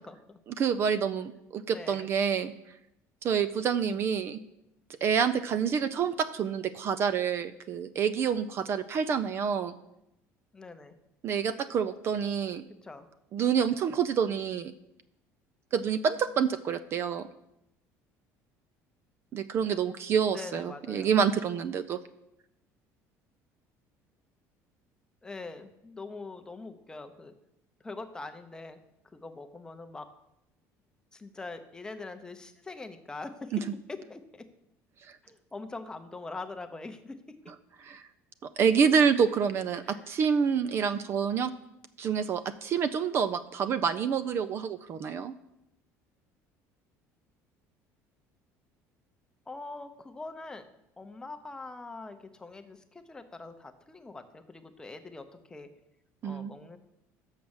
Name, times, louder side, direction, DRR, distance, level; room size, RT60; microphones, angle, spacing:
voice 1, 0.1-0.4 0.9-1.0 1.7-2.1 3.8-4.0 10.5-10.9 12.8-13.1 20.3-21.1 25.2-27.3 27.8-28.8 29.1-30.1 31.1-33.5 33.9-34.4 35.2-37.2 39.8-40.1 49.5-50.7 51.0-55.7 56.2-56.8, left 3 dB, 10° left, 7 dB, 0.7 m, -43 dB
voice 2, 0.6-2.5 3.2-4.4 5.0-9.7 11.2-12.6 13.3-14.7 15.7-17.3 19.3-22.0 37.8-38.0 38.4-41.5 42.0-45.3 56.2-56.5, right 7 dB, 40° right, 13 dB, 0.4 m, -27 dB
6.4 x 6.0 x 7.1 m, 0.84 s
cardioid pair, 145°, 6 cm